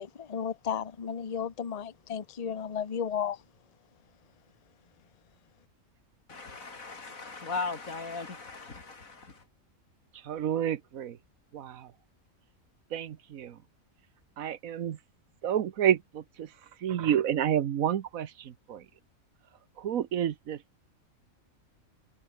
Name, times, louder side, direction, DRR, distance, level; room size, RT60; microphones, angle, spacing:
voice 1, 0.0-3.4, left 7 dB, 30° left, 0.9 m, -34 dB
voice 2, 6.3-9.4, left 4 dB, 75° left, 3.4 m, -38 dB
voice 3, 10.3-11.2 11.5-11.9 12.9-13.5 14.4-15.0 15.4-16.5 16.8-18.8 19.8-20.6, right 10 dB, 80° right, 1.4 m, -29 dB
omnidirectional pair, 1.4 m